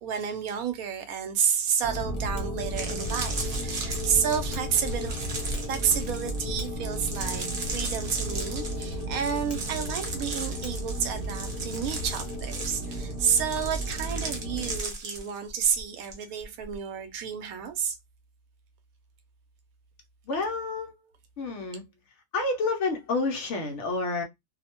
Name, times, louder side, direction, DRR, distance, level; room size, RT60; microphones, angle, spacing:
voice 1, 0.0-5.1 5.6-18.0, right 7 dB, 80° right, 1.0 m, -30 dB
sound 1, 1.8-14.8, equal, 45° left, 1.1 m, -34 dB
Mechanisms, 2.0-12.5, left 1 dB, 10° left, 0.9 m, -40 dB
sound 2, 2.6-16.2 16.4-16.8, right 3 dB, 50° right, 0.8 m, -37 dB
voice 2, 20.3-21.0 21.4-21.8 22.3-24.2, left 3 dB, 65° left, 0.8 m, -29 dB
2.6 x 2.1 x 2.8 m
omnidirectional pair, 1.5 m